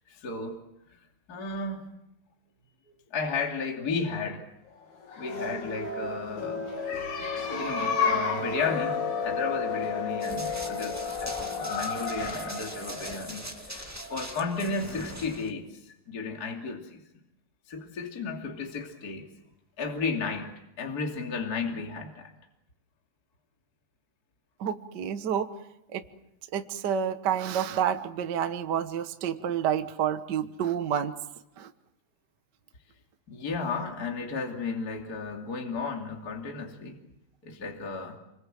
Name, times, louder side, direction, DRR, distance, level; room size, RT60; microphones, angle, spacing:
voice 1, 0.1-1.0 1.3-1.9 3.1-4.4 5.2-6.6 7.5-17.0 17.7-19.3 19.8-22.3 33.3-37.0 37.4-38.2, left 4 dB, 30° left, 2 dB, 2.9 m, -34 dB
sound 1, 5.0-14.6, left 4 dB, 60° left, 4.3 m, -32 dB
Run, 10.2-15.5, right 1 dB, 5° right, 1.2 m, -42 dB
voice 2, 24.6-25.5 25.9-26.0 26.5-31.1 31.6-31.7, right 8 dB, 75° right, 9 dB, 0.9 m, -29 dB
29.5 x 22.5 x 7.6 m, 0.85 s
omnidirectional pair, 3.9 m